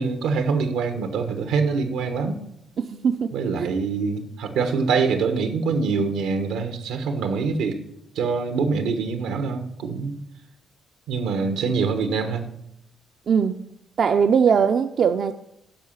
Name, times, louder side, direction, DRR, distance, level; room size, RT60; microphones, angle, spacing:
voice 1, 0.0-2.4 3.3-7.8 8.1-10.2 11.1-12.5, right 5 dB, 90° right, 8 dB, 1.2 m, -24 dB
voice 2, 2.8-3.3 3.6-3.7 13.3-13.7 14.0-15.3, right 6 dB, 55° right, 8 dB, 0.5 m, -20 dB
10.5 x 5.6 x 7.3 m, 0.81 s
cardioid pair, 90°, 0 cm